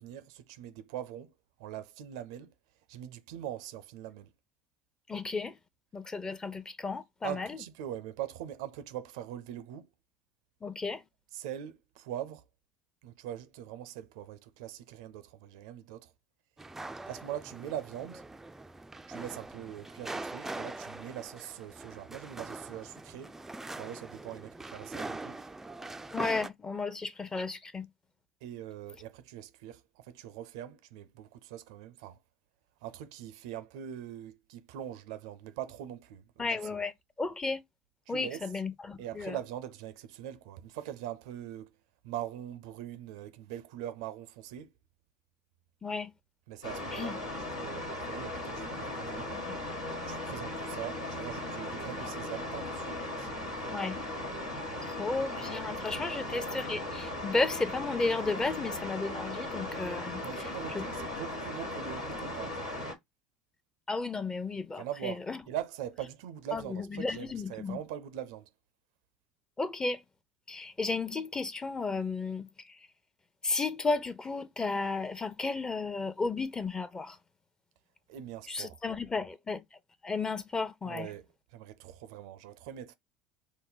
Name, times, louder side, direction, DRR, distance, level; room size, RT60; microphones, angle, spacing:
voice 1, 0.0-1.3 1.6-2.5 2.9-4.3 7.2-9.9 11.3-12.5 13.0-16.1 17.0-18.2 19.1-23.4 23.8-25.5 28.4-32.2 32.8-36.8 38.1-38.5 39.0-41.8 42.0-44.7 46.5-49.3 50.1-53.8 55.9-56.1 60.2-62.7 64.8-68.5 78.1-78.8 80.8-82.9, right 11 dB, 70° right, 0.5 m, -42 dB
voice 2, 5.1-5.5 5.9-7.5 10.6-11.0 26.1-27.9 36.4-36.9 37.2-37.6 38.1-39.4 45.8-46.1 46.9-47.1 49.3-49.4 53.7-54.0 54.9-60.2 60.7-60.8 63.9-65.4 66.5-66.6 66.9-67.8 69.6-70.0 70.5-72.5 73.4-77.2 78.5-79.6 80.0-81.1, left 3 dB, 20° left, 0.8 m, -33 dB
sound 1, 16.6-26.5, right 2 dB, 10° right, 0.4 m, -42 dB
sound 2, 46.6-62.9, left 1 dB, 85° left, 1.4 m, -37 dB
5.1 x 2.1 x 3.9 m
hypercardioid pair, 70°, 3 cm